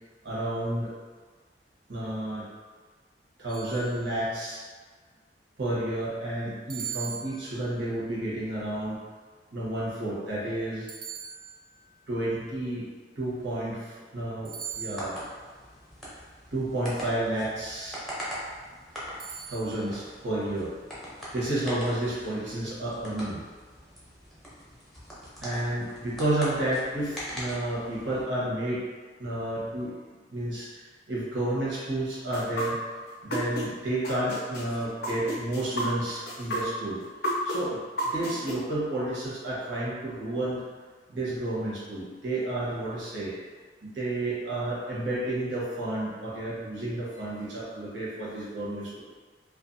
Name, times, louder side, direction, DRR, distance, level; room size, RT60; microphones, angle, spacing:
voice 1, 0.2-0.9 1.9-2.4 3.4-4.6 5.6-9.0 9.5-10.9 12.1-12.9 13.2-15.2 16.5-18.0 19.5-20.7 21.3-23.4 25.4-28.8 29.2-29.9 30.3-32.8 33.2-37.0 37.4-37.8 38.1-40.6 41.1-43.4 43.8-49.0, right 1 dB, 90° right, -7 dB, 0.9 m, -31 dB
sound 1, 3.5-4.4 6.7-7.9 10.9-11.9 14.4-15.4 19.2-20.0, right 8 dB, 50° right, 0.4 m, -40 dB
sound 2, 14.6-28.2, equal, ahead, 0.5 m, -42 dB
sound 3, 32.3-33.7 34.0-38.5, equal, 60° left, 0.4 m, -31 dB
2.4 x 2.2 x 2.5 m, 1.5 s
head